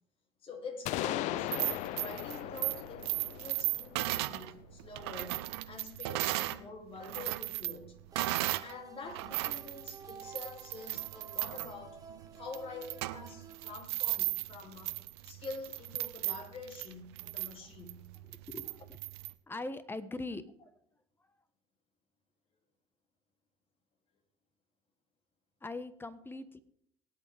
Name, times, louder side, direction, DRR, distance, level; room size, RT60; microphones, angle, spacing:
voice 1, 0.4-8.0 8.6-12.0 12.3-15.0 15.2-18.3 18.6-18.7, left 3 dB, 45° left, 2.9 m, -46 dB
sound 1, 0.9-4.7, left 16 dB, 65° left, 0.4 m, -38 dB
sound 2, 1.4-6.6 7.0-8.7 9.1-19.3, right 18 dB, 80° right, 0.6 m, -36 dB
sound 3, 8.1-13.8, right 6 dB, 25° right, 1.3 m, -52 dB
voice 2, 18.3-19.0 19.5-20.4 25.6-26.6, left 2 dB, 15° left, 1.3 m, -41 dB
22.0 x 8.8 x 3.5 m
hypercardioid pair, 75°, 13 cm